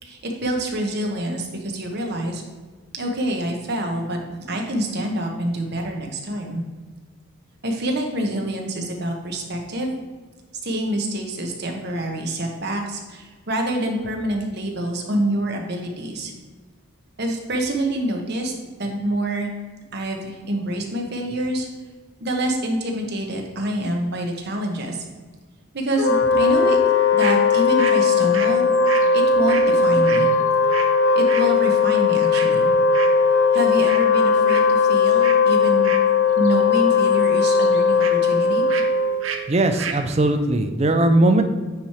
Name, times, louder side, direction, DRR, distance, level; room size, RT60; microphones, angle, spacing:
voice 1, 0.0-2.4 2.9-4.2 4.5-6.6 7.6-9.9 10.6-16.3 17.2-18.5 18.8-19.5 19.9-21.7 22.2-25.0 25.7-26.8 27.1-28.7 29.1-30.3 31.1-32.7 33.5-35.9 36.4-38.6, right 1 dB, 50° right, 2 dB, 1.1 m, -26 dB
Wind instrument woodwind instrument, 26.0-39.4, left 5 dB, 65° left, 0.5 m, -18 dB
sound 1, 27.2-27.4 27.8-30.9 31.2-31.5 32.3-32.6 32.9-33.3 33.5-34.0 34.3-34.7 35.2-35.4 35.8-36.6 36.9-38.1 38.7-38.9 39.2-39.4 39.7-40.0, right 6 dB, 70° right, 0.7 m, -32 dB
voice 2, 39.5-41.4, right 2 dB, 30° right, 7 dB, 0.5 m, -19 dB
9.2 x 3.2 x 4.3 m, 1.4 s
head